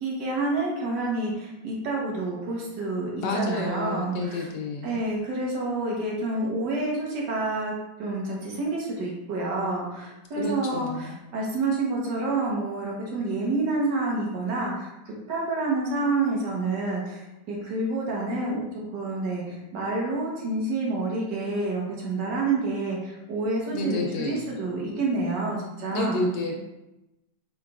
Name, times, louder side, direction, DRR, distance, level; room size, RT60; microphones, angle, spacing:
voice 1, 0.0-4.5 4.8-7.7 8.0-18.6 18.9-26.3, right 2 dB, 70° right, -3 dB, 1.7 m, -28 dB
voice 2, 3.2-5.0 10.4-11.1 23.7-24.4 25.9-26.6, left 2 dB, 70° left, -1 dB, 1.4 m, -29 dB
4.9 x 4.1 x 2.4 m, 0.94 s
omnidirectional pair, 2.0 m